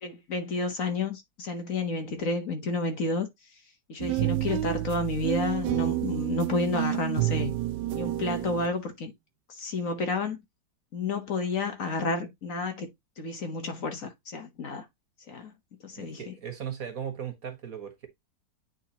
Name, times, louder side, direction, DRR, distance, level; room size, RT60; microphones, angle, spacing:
voice 1, 0.0-3.3 3.9-7.6 7.9-9.1 9.5-10.4 10.9-12.9 13.2-14.8 15.3-15.5 15.8-16.3, left 3 dB, 55° left, 1.4 m, -30 dB
sound 1, 4.0-8.7, right 15 dB, 80° right, 1.4 m, -29 dB
voice 2, 15.9-18.1, right 8 dB, 55° right, 1.8 m, -38 dB
9.1 x 3.7 x 2.9 m
omnidirectional pair, 1.9 m